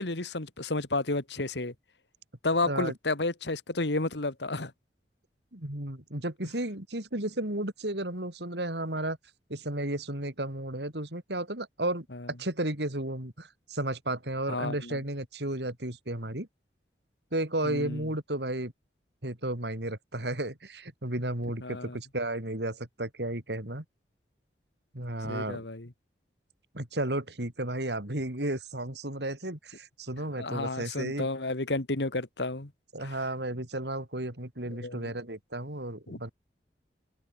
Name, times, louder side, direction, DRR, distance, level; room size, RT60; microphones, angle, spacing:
voice 1, 0.0-1.7 2.4-4.7 12.1-12.3 14.5-15.0 17.6-18.1 21.6-22.0 25.2-25.9 30.4-32.7 33.0-33.2 34.7-35.1 36.1-36.2, left 2 dB, 80° left, 1.9 m, -32 dB
voice 2, 5.5-9.2 9.5-12.1 12.4-16.5 17.3-18.7 19.2-23.8 24.9-25.6 26.7-31.3 32.9-36.3, right 1 dB, 75° right, 4.4 m, -33 dB
head